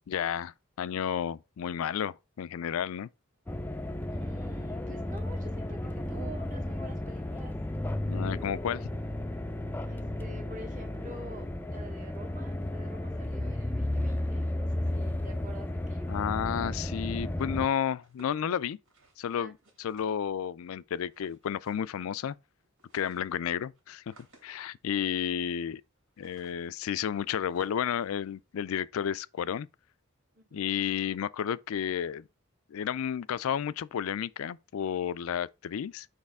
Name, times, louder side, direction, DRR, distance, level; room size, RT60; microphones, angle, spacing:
voice 1, 0.1-3.1 8.1-8.9 16.1-18.8 19.2-22.4 22.9-24.0 24.4-25.8 26.2-29.7 30.5-32.3 32.7-36.1, left 8 dB, 85° left, 0.4 m, -32 dB
sound 1, 3.5-17.7, left 1 dB, 10° left, 0.4 m, -33 dB
voice 2, 4.1-7.5 9.9-16.2 19.3-19.5 20.0-20.2 30.3-30.7, right 1 dB, 40° right, 1.2 m, -48 dB
sound 2, 17.9-20.5 21.1-22.0 22.2-22.3 22.6-28.8, right 2 dB, 90° right, 3.1 m, -60 dB
6.5 x 4.8 x 3.5 m
head